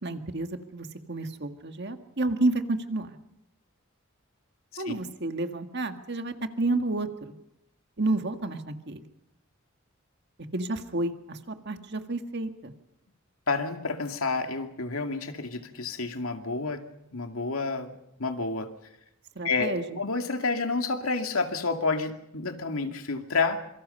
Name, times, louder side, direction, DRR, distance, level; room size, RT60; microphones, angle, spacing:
voice 1, 0.0-3.2 4.8-7.3 8.0-9.0 10.5-12.7 19.4-20.0, right 2 dB, 55° right, 7 dB, 1.8 m, -30 dB
voice 2, 13.5-16.8 17.1-17.9 18.2-18.7 19.4-23.6, left 3 dB, 90° left, 5 dB, 2.4 m, -29 dB
26.5 x 24.5 x 5.5 m, 0.85 s
head